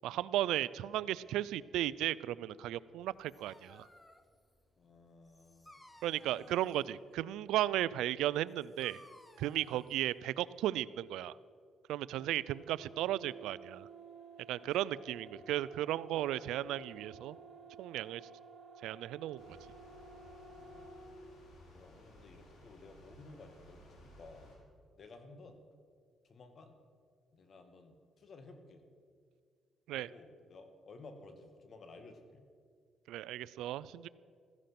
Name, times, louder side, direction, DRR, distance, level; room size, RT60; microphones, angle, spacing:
voice 1, 0.0-3.9 6.0-9.0 9.4-11.3 11.9-13.9 14.5-17.4 17.8-18.2 18.8-19.4 29.9-30.1 33.1-34.1, right 13 dB, 90° right, 19 dB, 0.4 m, -35 dB
Dog, 3.0-10.8, left 1 dB, 15° left, 1.2 m, -61 dB
voice 2, 4.8-5.7 6.2-6.7 9.7-9.9 12.1-12.3 14.6-14.9 20.5-21.2 21.7-24.5 25.0-25.6 26.2-26.8 27.3-28.8 29.9-32.4, left 3 dB, 50° left, 6 dB, 2.1 m, -56 dB
sound 1, 12.1-21.2, right 4 dB, 30° right, 4.6 m, -54 dB
sound 2, 19.4-24.6, equal, 80° left, 4.8 m, -58 dB
16.0 x 14.5 x 5.9 m, 2.1 s
cardioid pair, 90°, 0 cm